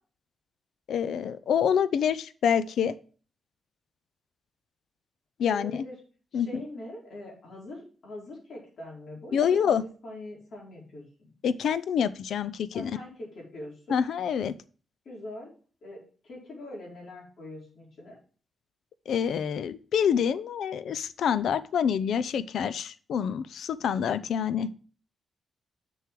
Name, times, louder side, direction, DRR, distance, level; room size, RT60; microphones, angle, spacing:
voice 1, 0.9-2.9 5.4-5.8 6.3-6.6 9.3-9.8 11.4-13.0 13.9-14.6 19.1-24.7, left 8 dB, 80° left, 15 dB, 0.5 m, -27 dB
voice 2, 5.5-6.0 6.3-11.3 12.7-14.0 15.0-15.5 15.8-18.2, left 1 dB, 60° left, -3 dB, 4.3 m, -43 dB
6.8 x 6.4 x 4.6 m, 0.40 s
wide cardioid pair, 140°, 0 cm